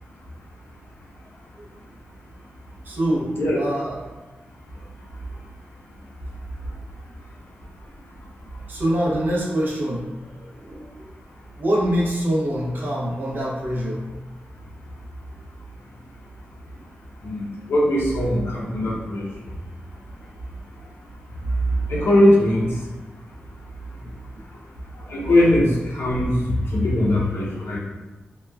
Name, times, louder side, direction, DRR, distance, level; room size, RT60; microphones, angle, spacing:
voice 1, 2.8-4.0 7.0-7.1 8.7-11.1 11.6-14.0 18.9-19.0 20.2-20.3 21.4-21.5 23.9-24.1, equal, 55° right, -4 dB, 0.7 m, -25 dB
voice 2, 17.7-19.2 21.9-22.7 25.1-26.4 26.7-27.8, left 1 dB, 80° left, -4 dB, 0.7 m, -20 dB
2.9 x 2.3 x 2.2 m, 1.2 s
wide cardioid pair, 125°, 4 cm